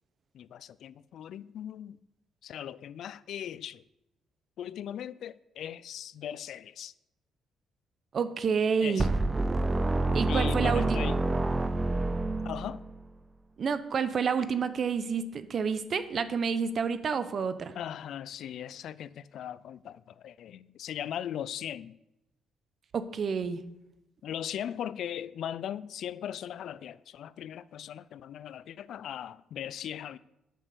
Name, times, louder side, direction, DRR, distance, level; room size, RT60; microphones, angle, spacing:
voice 1, 0.3-2.0 2.4-3.8 4.6-6.9 8.8-9.1 10.3-11.2 12.4-12.8 17.7-22.0 24.2-30.2, left 10 dB, 70° left, 0.3 m, -39 dB
voice 2, 8.1-9.1 10.1-11.0 13.6-17.7 22.9-23.6, right 6 dB, 50° right, 0.8 m, -29 dB
sound 1, 9.0-13.0, right 2 dB, 20° right, 0.5 m, -28 dB
9.2 x 6.3 x 6.7 m
cardioid pair, 90°, 0 cm